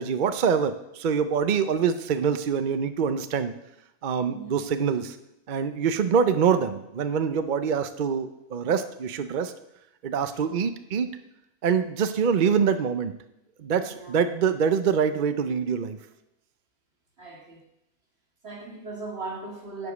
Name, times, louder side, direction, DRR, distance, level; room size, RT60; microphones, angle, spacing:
voice 1, 0.0-3.5 4.0-5.2 5.5-9.5 10.0-11.2 11.6-13.1 13.6-16.0, right 6 dB, 60° right, 10 dB, 0.5 m, -25 dB
voice 2, 4.2-4.6 10.3-10.6 13.8-14.2 17.2-17.7 18.4-19.9, right 3 dB, 45° right, 0 dB, 2.4 m, -39 dB
11.0 x 5.0 x 8.1 m, 0.85 s
omnidirectional pair, 1.6 m